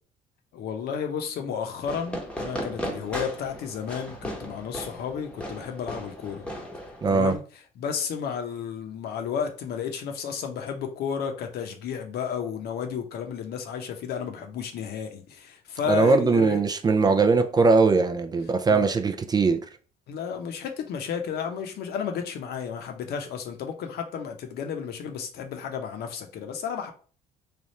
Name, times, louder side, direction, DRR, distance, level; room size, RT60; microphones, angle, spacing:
voice 1, 0.5-6.5 7.1-16.6 18.7-18.9 20.1-26.9, left 7 dB, 70° left, 0.8 m, -32 dB
Fireworks, 1.8-7.4, equal, 5° left, 0.9 m, -36 dB
voice 2, 7.0-7.4 15.9-19.6, right 4 dB, 25° right, 0.4 m, -21 dB
3.3 x 2.4 x 4.1 m
cardioid pair, 110°, 17 cm